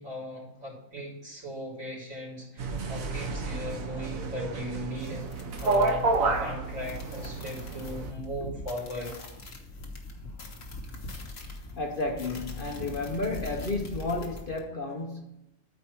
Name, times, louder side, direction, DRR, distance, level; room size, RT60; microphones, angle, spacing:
voice 1, 0.0-5.2 5.6-9.1, left 1 dB, 55° right, 3.9 m, -38 dB
sound 1, 2.6-8.1, right 3 dB, 75° right, 1.4 m, -30 dB
sound 2, 5.0-14.6, left 2 dB, 65° left, 1.7 m, -42 dB
voice 2, 11.8-15.4, left 3 dB, 45° left, 0.9 m, -32 dB
13.0 x 4.6 x 4.5 m
omnidirectional pair, 1.4 m